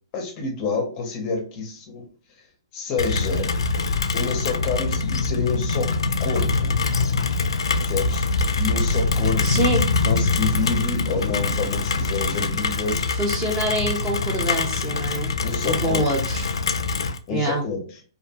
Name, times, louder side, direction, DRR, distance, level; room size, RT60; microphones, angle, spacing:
voice 1, 0.1-2.0 2.7-3.5 4.1-5.9 6.2-6.7 7.8-8.3 8.6-9.6 10.0-13.1 15.4-16.1 17.3-17.8, left 4 dB, 30° left, 3 dB, 0.6 m, -28 dB
Rain, 3.0-17.2, left 3 dB, 85° left, 0.3 m, -24 dB
voice 2, 9.4-9.8 13.1-15.4 15.6-16.4 17.3-17.6, right 1 dB, 15° right, 0 dB, 0.7 m, -25 dB
2.5 x 2.1 x 2.8 m, 0.39 s
hypercardioid pair, 155°, 3 cm